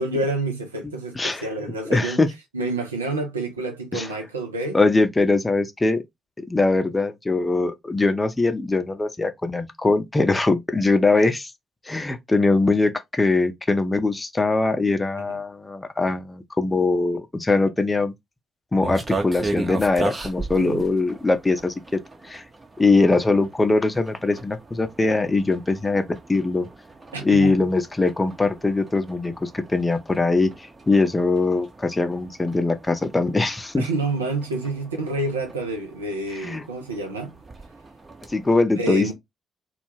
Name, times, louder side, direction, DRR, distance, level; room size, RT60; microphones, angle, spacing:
voice 1, 0.0-2.2 2.5-4.8 15.3-15.4 20.6-20.8 27.1-27.5 33.8-37.4 38.8-39.1, right 2 dB, 85° right, 0.4 m, -28 dB
voice 2, 1.8-2.3 3.9-4.1 4.7-6.0 6.4-11.5 11.9-18.1 18.7-22.4 22.8-26.0 26.3-26.7 27.2-33.8 36.4-36.6 38.3-39.1, left 3 dB, 20° left, 0.5 m, -22 dB
sound 1, 18.8-38.6, right 2 dB, 30° right, 0.7 m, -38 dB
2.3 x 2.1 x 3.0 m
figure-of-eight pair, 40°, 0 cm